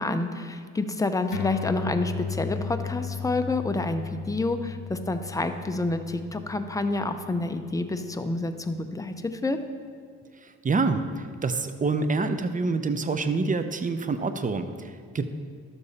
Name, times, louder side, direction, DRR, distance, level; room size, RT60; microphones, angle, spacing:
voice 1, 0.0-9.6, left 2 dB, 10° left, 7 dB, 0.6 m, -28 dB
sound 1, 1.3-8.2, left 7 dB, 75° left, 1.3 m, -36 dB
voice 2, 10.6-15.2, right 3 dB, 25° right, 9 dB, 0.6 m, -27 dB
12.0 x 6.8 x 4.2 m, 2.1 s
cardioid pair, 90°, 30 cm